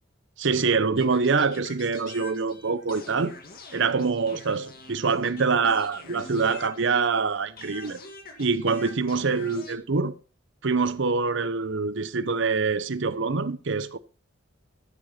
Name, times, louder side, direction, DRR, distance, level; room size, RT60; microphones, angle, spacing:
voice 1, 0.4-3.4 3.7-8.0 8.4-10.1 10.6-14.0, right 4 dB, 65° right, 0.8 m, -25 dB
sound 1, 1.0-7.2 7.6-9.8, left 3 dB, 50° left, 2.1 m, -45 dB
13.0 x 7.9 x 4.2 m
head